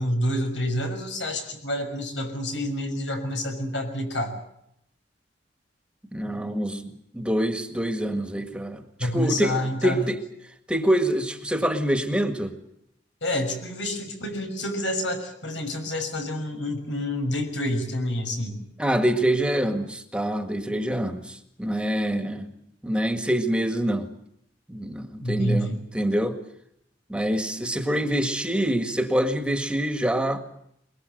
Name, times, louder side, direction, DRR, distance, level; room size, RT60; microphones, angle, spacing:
voice 1, 0.0-4.3 9.0-10.0 13.2-18.6 25.2-25.8, left 1 dB, 85° left, 5 dB, 6.2 m, -28 dB
voice 2, 6.1-8.8 9.1-9.6 9.8-10.2 10.7-12.5 18.8-22.5 22.8-24.1 24.7-25.7 25.9-26.4 27.1-30.4, right 1 dB, 5° right, 6 dB, 1.8 m, -25 dB
23.0 x 22.5 x 7.9 m, 0.75 s
head